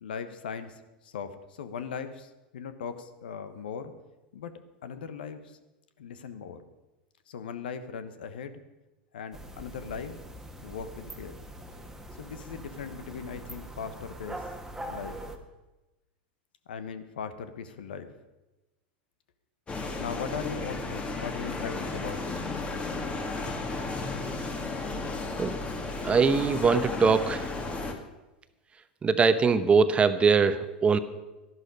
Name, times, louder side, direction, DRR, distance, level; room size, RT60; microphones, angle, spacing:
voice 1, 0.0-3.9 4.3-5.6 6.0-6.6 7.3-8.6 9.1-10.2 10.6-11.4 12.2-14.4 14.9-15.2 16.7-18.1 20.0-22.2, left 6 dB, 75° left, 11 dB, 1.1 m, -39 dB
sound 1, 9.3-15.4, right 1 dB, 5° right, 1.5 m, -42 dB
sound 2, 19.7-27.9, left 3 dB, 20° left, 1.8 m, -34 dB
voice 2, 26.0-27.4 29.0-31.0, right 5 dB, 20° right, 11 dB, 0.9 m, -22 dB
12.5 x 11.5 x 5.4 m, 1.0 s
hypercardioid pair, 95°, 5 cm